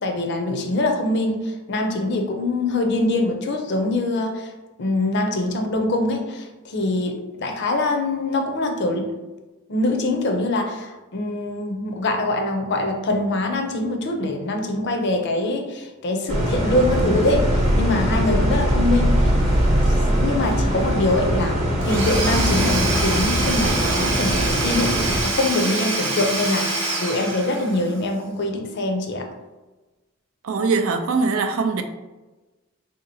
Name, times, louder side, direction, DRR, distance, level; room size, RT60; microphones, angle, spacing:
voice 1, 0.0-4.5 4.8-9.1 9.7-19.4 19.9-21.6 21.8-29.3, left 2 dB, 55° left, 0.5 m, -24 dB
sound 1, 16.3-25.2, equal, 35° right, 0.8 m, -21 dB
Domestic sounds home sounds / Tools, 21.8-27.9, right 2 dB, 65° right, 0.7 m, -26 dB
voice 2, 30.4-31.8, right 4 dB, 85° right, 0.4 m, -22 dB
3.6 x 2.8 x 2.7 m
head